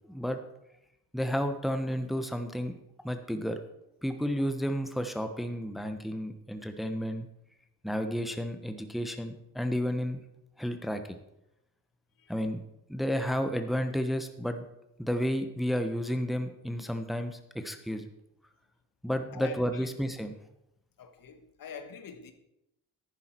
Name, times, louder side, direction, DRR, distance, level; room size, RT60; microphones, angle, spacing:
voice 1, 0.1-0.4 1.1-2.7 3.0-3.6 4.0-7.3 7.8-10.2 10.6-11.0 12.3-12.6 12.9-14.7 15.0-18.0 19.0-20.4, equal, ahead, 1.1 m, -31 dB
voice 2, 19.3-19.9 21.0-22.3, left 7 dB, 60° left, 1.4 m, -45 dB
11.0 x 9.7 x 4.6 m
cardioid pair, 75°, 38 cm